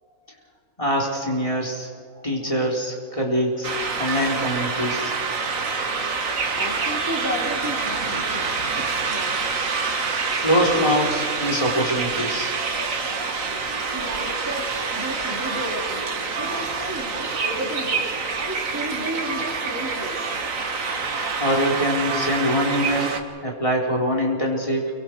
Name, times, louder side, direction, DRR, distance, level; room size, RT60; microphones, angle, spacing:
voice 1, 0.8-1.9 2.2-3.7 4.0-5.1 10.4-12.5 21.4-24.9, equal, 20° left, -2 dB, 3.9 m, -23 dB
sound 1, 3.6-23.2, right 4 dB, 65° right, 1.9 m, -27 dB
voice 2, 6.5-9.4 13.4-18.1 18.4-20.2 24.7-24.8, equal, 10° right, -1 dB, 3.6 m, -33 dB
29.0 x 24.5 x 4.7 m, 2.1 s
omnidirectional pair, 1.5 m